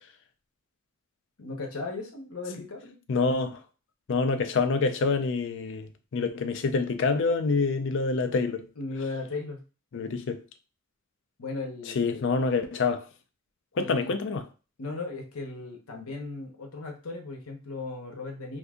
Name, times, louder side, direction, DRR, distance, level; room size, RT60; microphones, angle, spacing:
voice 1, 1.4-3.0 8.8-9.6 11.4-12.3 13.7-14.2 14.8-18.6, left 3 dB, 75° left, 0.9 m, -37 dB
voice 2, 3.1-3.6 4.1-8.6 9.9-10.4 12.0-13.1 13.8-14.4, left 4 dB, 60° left, 0.4 m, -26 dB
2.7 x 2.6 x 3.5 m
head